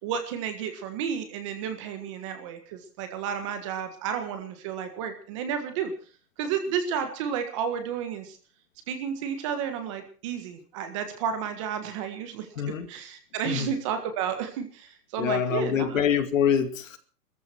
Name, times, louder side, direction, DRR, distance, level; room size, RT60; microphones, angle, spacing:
voice 1, 0.0-5.9 6.4-8.4 8.9-16.0, right 7 dB, 20° right, 7 dB, 1.6 m, -32 dB
voice 2, 12.6-12.9 13.4-13.7 15.2-17.0, left 8 dB, 55° left, 9 dB, 2.4 m, -25 dB
21.5 x 14.5 x 4.6 m, 0.38 s
hypercardioid pair, 175°, 46 cm